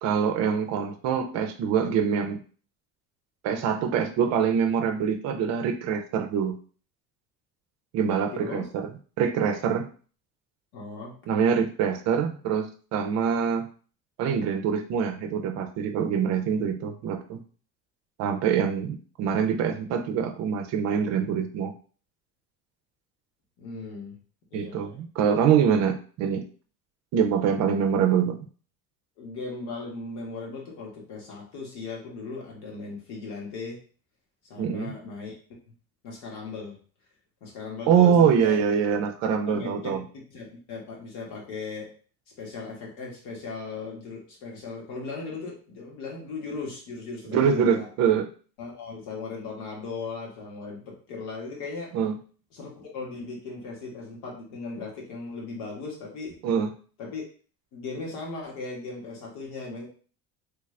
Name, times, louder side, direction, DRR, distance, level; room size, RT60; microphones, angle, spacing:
voice 1, 0.0-2.4 3.4-6.6 7.9-8.9 9.2-9.9 11.3-13.7 14.2-17.4 18.2-21.7 24.5-26.4 27.1-28.4 34.6-34.9 37.9-40.0 47.3-48.3 51.9-52.1 56.4-56.7, right 7 dB, 55° right, 6 dB, 0.5 m, -24 dB
voice 2, 8.3-8.7 10.7-11.2 23.6-24.1 24.5-25.0 29.2-33.8 34.4-35.4 36.0-36.8 37.4-38.6 39.5-41.9 42.4-47.9 48.6-52.0 52.5-56.4 57.0-57.2 57.7-59.9, left 4 dB, 80° left, -2 dB, 1.5 m, -37 dB
3.3 x 2.4 x 3.2 m, 0.40 s
cardioid pair, 160°, 32 cm